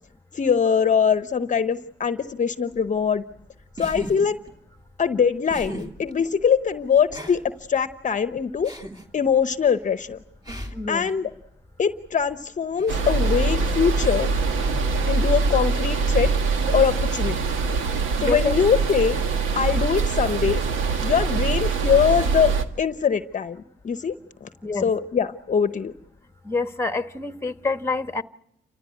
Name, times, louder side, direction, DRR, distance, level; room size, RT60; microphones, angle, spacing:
voice 1, 0.3-3.2 3.8-4.4 5.0-7.4 7.7-8.7 9.1-10.2 10.9-11.3 11.8-14.3 15.1-16.3 16.7-17.4 18.2-19.2 19.5-20.6 21.0-22.5 22.8-23.6 23.8-24.1 24.4-25.9, left 7 dB, 40° left, 12 dB, 0.9 m, -22 dB
sound 1, 2.8-22.4, right 1 dB, 20° right, 3.1 m, -43 dB
sound 2, 12.9-22.6, right 4 dB, 85° right, 1.9 m, -23 dB
voice 2, 18.2-18.5 24.6-24.9 26.4-28.2, left 3 dB, 15° left, 10 dB, 1.3 m, -27 dB
29.5 x 15.0 x 9.4 m, 0.78 s
cardioid pair, 90°, 20 cm